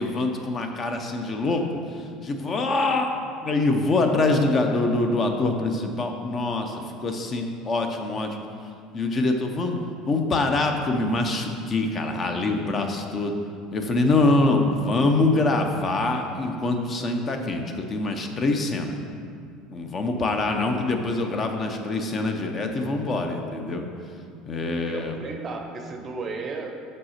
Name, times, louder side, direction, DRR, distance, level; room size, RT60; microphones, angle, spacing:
voice 1, 0.0-1.7 2.2-8.4 8.9-9.8 10.1-13.3 13.7-18.9 19.7-23.9 24.5-25.1, left 2 dB, 25° left, 4 dB, 0.5 m, -24 dB
voice 2, 24.9-26.7, right 4 dB, 25° right, 3 dB, 0.6 m, -34 dB
6.4 x 5.3 x 5.7 m, 2.3 s
cardioid pair, 170°, 0 cm